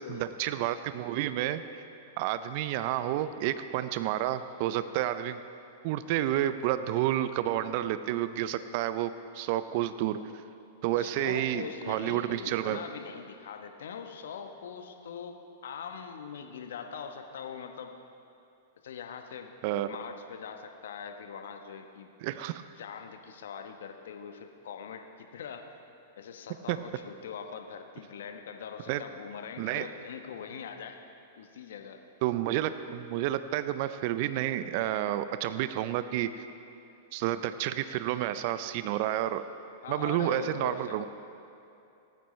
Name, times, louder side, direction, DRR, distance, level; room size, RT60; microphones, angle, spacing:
voice 1, 0.0-1.6 2.2-5.4 5.8-10.2 10.8-12.8 19.6-19.9 22.2-22.6 26.7-26.8 28.9-29.0 29.6-29.9 32.2-36.4 37.1-39.5 39.9-41.0, right 12 dB, 55° right, 12 dB, 0.5 m, -30 dB
voice 2, 11.0-18.0 18.8-19.5 19.9-22.1 22.8-25.7 26.2-31.0 31.4-32.0 39.8-41.0, left 7 dB, 70° left, 5 dB, 1.0 m, -42 dB
19.5 x 9.1 x 3.2 m, 2.7 s
hypercardioid pair, 105°, 0 cm